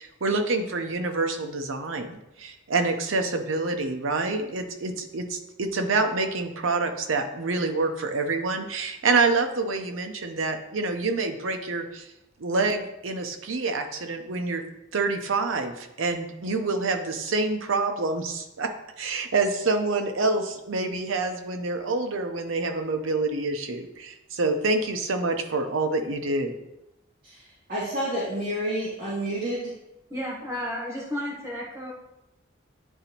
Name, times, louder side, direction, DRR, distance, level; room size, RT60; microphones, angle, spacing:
voice 1, 0.0-12.1 12.4-14.6 14.9-18.7 19.0-26.5, right 3 dB, 90° right, 6 dB, 0.8 m, -27 dB
voice 2, 27.2-29.7, right 1 dB, 45° right, -10 dB, 2.0 m, -30 dB
voice 3, 30.1-31.9, equal, 15° right, -4 dB, 1.1 m, -32 dB
10.0 x 3.9 x 2.9 m, 0.92 s
head